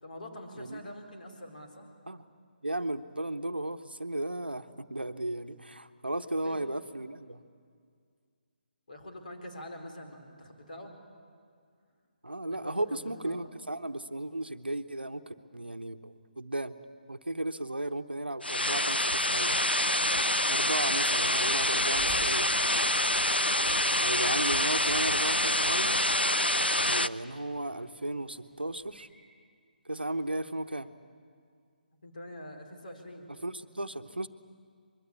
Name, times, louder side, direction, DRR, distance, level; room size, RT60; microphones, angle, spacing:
voice 1, 0.0-1.9 6.4-6.7 8.9-10.9 12.5-13.5 30.4-30.5 32.0-33.3, left 1 dB, 55° left, 2 dB, 4.1 m, -45 dB
voice 2, 2.6-7.4 12.2-16.7 17.1-19.6 20.5-22.5 24.0-26.0 26.9-29.1 29.9-30.9 33.4-34.3, right 1 dB, 80° right, 10 dB, 1.0 m, -35 dB
sound 1, 18.4-27.1, left 1 dB, 90° left, 0.5 m, -26 dB
sound 2, 21.6-29.1, right 5 dB, 5° right, 3.1 m, -52 dB
23.5 x 23.0 x 8.4 m, 2.1 s
figure-of-eight pair, 145°, 5 cm